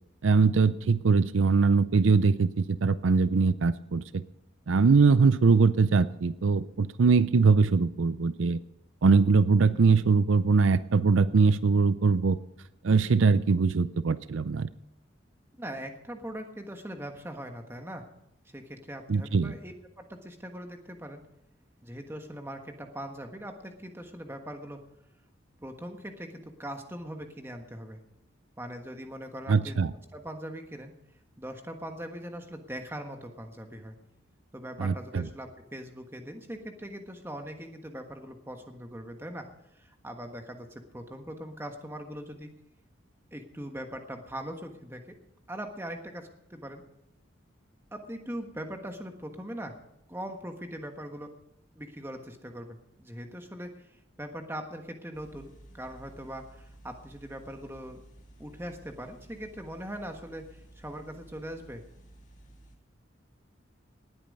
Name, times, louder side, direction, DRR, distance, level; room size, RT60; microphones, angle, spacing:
voice 1, 0.2-4.2 4.7-8.6 9.0-12.4 12.8-14.7 19.1-19.5 29.5-29.9 34.8-35.3, right 4 dB, 80° right, 15 dB, 0.5 m, -22 dB
voice 2, 15.6-18.1 18.5-21.2 21.8-24.8 25.6-28.0 28.6-29.8 30.1-30.9 31.4-33.9 34.5-39.5 39.7-40.7 40.9-42.5 43.3-45.0 45.5-46.8 47.9-49.7 50.1-51.3 51.7-53.9 54.2-58.0 58.4-61.8, equal, 10° right, 4 dB, 1.4 m, -41 dB
sound 1, 55.1-62.8, right 1 dB, 40° left, 2.5 m, -54 dB
19.0 x 8.7 x 5.4 m, 0.83 s
head